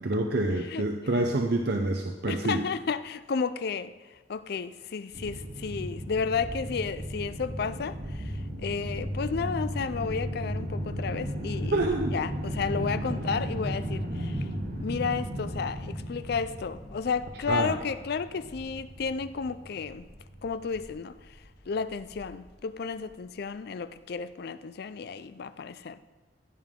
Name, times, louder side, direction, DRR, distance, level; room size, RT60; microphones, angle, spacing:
voice 1, 0.0-2.6 11.7-12.1 17.5-17.7, right 2 dB, 60° right, 0.7 m, -27 dB
voice 2, 2.3-11.8 12.1-14.5 14.8-20.1 20.4-21.4 21.7-26.0, left 5 dB, 60° left, 0.4 m, -32 dB
sound 1, 5.1-22.5, equal, 80° right, 2.6 m, -35 dB
15.5 x 9.4 x 3.7 m
head